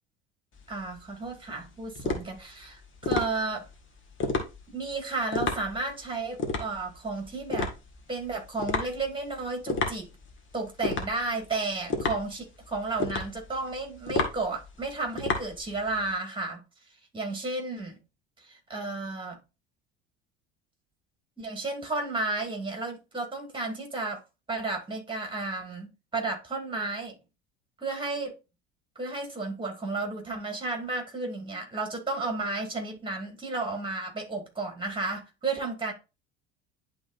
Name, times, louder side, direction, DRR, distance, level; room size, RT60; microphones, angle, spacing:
sound 1, 0.5-16.1, left 3 dB, 35° left, 1.7 m, -33 dB
voice 1, 0.7-3.7 4.7-7.7 8.1-10.1 10.5-16.6 17.1-18.0 18.4-19.4 21.4-24.2 24.5-27.2 27.8-28.3 29.0-35.9, right 3 dB, 15° right, 2.7 m, -33 dB
11.0 x 3.8 x 2.6 m
figure-of-eight pair, 65°, 34 cm